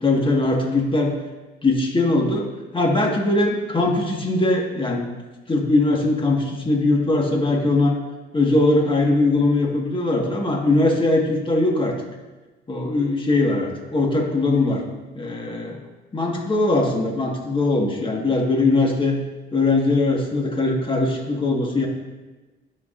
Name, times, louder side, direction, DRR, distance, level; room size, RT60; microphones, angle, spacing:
voice 1, 0.0-1.1 1.6-2.5 2.7-5.0 5.5-7.9 8.3-12.0 12.7-14.8 15.1-15.8 16.1-19.2 19.5-21.9, left 2 dB, 25° left, 0 dB, 1.5 m, -20 dB
12.5 x 4.7 x 2.5 m, 1.2 s
cardioid pair, 90°, 20 cm